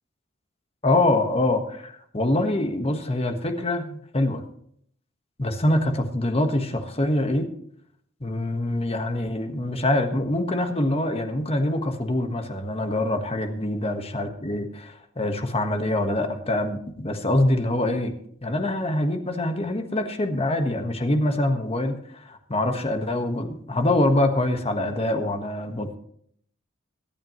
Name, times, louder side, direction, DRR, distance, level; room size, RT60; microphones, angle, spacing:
voice 1, 0.8-4.4 5.4-7.5 8.2-18.1 18.4-26.0, left 1 dB, 30° left, 6 dB, 1.4 m, -25 dB
24.0 x 8.7 x 3.1 m, 0.64 s
head